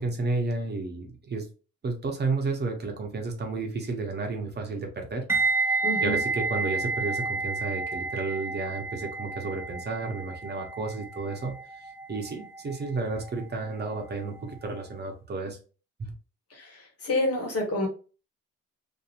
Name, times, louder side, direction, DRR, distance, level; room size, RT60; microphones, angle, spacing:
voice 1, 0.0-1.5 1.8-5.2 5.7-11.5 12.1-15.6 16.0-16.1, right 3 dB, 35° right, 2 dB, 0.8 m, -32 dB
sound 1, 5.3-14.3 14.5-14.8, right 3 dB, 10° right, 0.5 m, -31 dB
voice 2, 5.8-6.2 16.5-17.9, left 2 dB, 50° left, 1 dB, 1.3 m, -28 dB
2.8 x 2.6 x 2.4 m, 0.35 s
cardioid pair, 90°, 30 cm